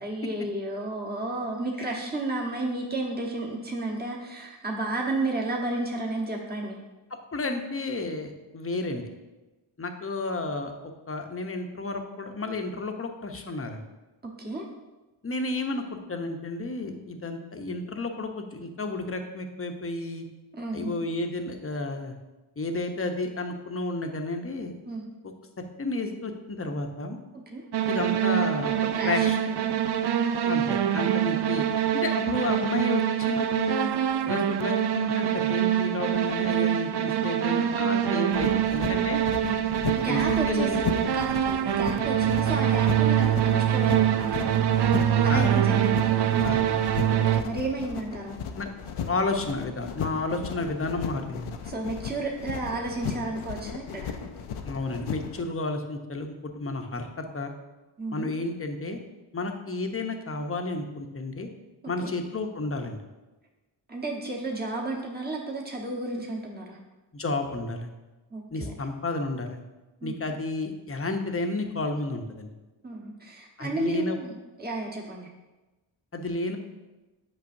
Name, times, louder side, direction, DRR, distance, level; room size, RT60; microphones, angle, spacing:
voice 1, 0.0-6.8 14.2-14.7 20.5-21.0 24.8-25.0 27.5-27.6 28.9-29.8 39.4-39.7 40.0-44.6 44.9-46.1 47.2-48.4 51.7-54.2 58.0-58.3 62.0-62.1 63.9-66.8 68.3-68.7 70.0-70.3 72.8-75.3, right 2 dB, 20° right, -1 dB, 1.2 m, -32 dB
voice 2, 7.3-9.1 9.8-13.8 15.2-20.3 20.7-22.1 22.6-24.7 25.8-27.2 27.9-28.7 29.0-29.4 30.4-31.6 31.9-33.9 34.2-39.3 40.1-40.8 45.3-45.6 46.4-46.8 48.5-48.7 49.1-51.5 54.6-57.5 58.1-59.0 59.3-61.5 61.9-63.0 67.1-67.9 68.5-69.6 70.0-72.5 73.6-74.2 76.1-76.6, left 2 dB, 25° left, 5 dB, 0.9 m, -31 dB
sound 1, 27.7-47.4, right 10 dB, 55° right, 0.5 m, -24 dB
sound 2, 38.3-55.4, left 7 dB, 75° left, 0.7 m, -36 dB
8.5 x 5.5 x 2.7 m, 1.1 s
cardioid pair, 60°, 50 cm